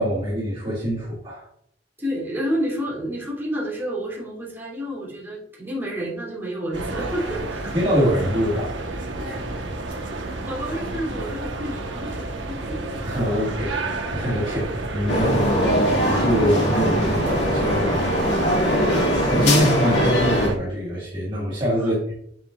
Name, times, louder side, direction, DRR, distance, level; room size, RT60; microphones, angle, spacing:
voice 1, 0.0-1.4 7.7-8.7 13.0-13.8 14.1-22.1, equal, 25° right, -7 dB, 1.6 m, -24 dB
voice 2, 2.0-7.8 9.2-9.3 10.5-12.8 21.8-22.0, equal, 10° right, -5 dB, 2.6 m, -30 dB
sound 1, 6.7-20.6, right 2 dB, 75° right, 1.1 m, -31 dB
sound 2, 15.1-20.5, equal, 70° left, 2.0 m, -21 dB
7.4 x 6.7 x 2.3 m, 0.70 s
head